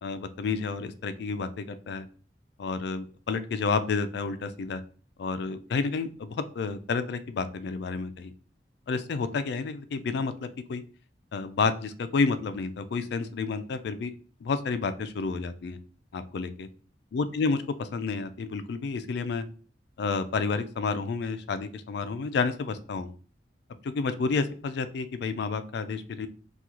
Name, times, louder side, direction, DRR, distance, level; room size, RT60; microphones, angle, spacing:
voice 1, 0.0-2.1 2.6-4.8 5.2-8.3 8.9-10.8 11.3-14.1 14.4-15.8 16.1-16.7 17.1-17.6 17.9-19.4 20.0-23.1 23.8-26.3, left 4 dB, 65° left, 11 dB, 0.3 m, -30 dB
2.9 x 2.3 x 3.6 m, 0.41 s
head